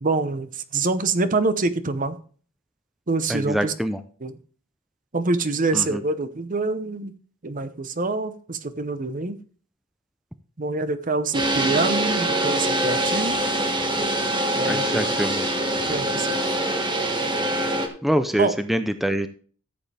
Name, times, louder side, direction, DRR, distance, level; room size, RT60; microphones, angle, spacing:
voice 1, 0.0-2.1 3.1-3.7 4.2-4.3 5.1-7.1 7.4-9.4 10.6-13.4 14.6-15.1 15.9-16.4 18.4-18.6, right 3 dB, 45° right, 12 dB, 0.9 m, -25 dB
voice 2, 3.3-4.0 5.7-6.0 14.6-15.4 18.0-19.3, equal, ahead, 9 dB, 0.6 m, -25 dB
sound 1, 11.3-17.9, right 1 dB, 25° right, 1.7 m, -24 dB
14.0 x 7.9 x 3.4 m, 0.43 s
head